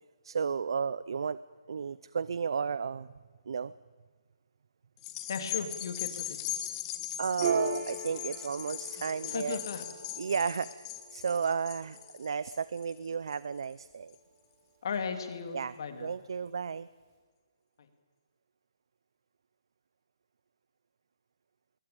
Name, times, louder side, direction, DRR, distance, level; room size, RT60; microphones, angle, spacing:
voice 1, 0.2-1.4 1.7-3.1 3.5-3.7 7.2-9.6 10.2-14.2 15.5-15.7 16.0-16.9, right 6 dB, 70° right, 17 dB, 0.6 m, -33 dB
sound 1, 5.0-13.6 14.1-14.2, left 12 dB, 20° left, 1.7 m, -40 dB
voice 2, 5.3-6.4 9.3-9.8 14.8-16.1, left 6 dB, 60° left, 8 dB, 3.0 m, -36 dB
Piano, 7.4-14.3, right 4 dB, 30° right, 4.0 m, -41 dB
21.5 x 18.5 x 9.0 m, 1.5 s
hypercardioid pair, 155°, 3 cm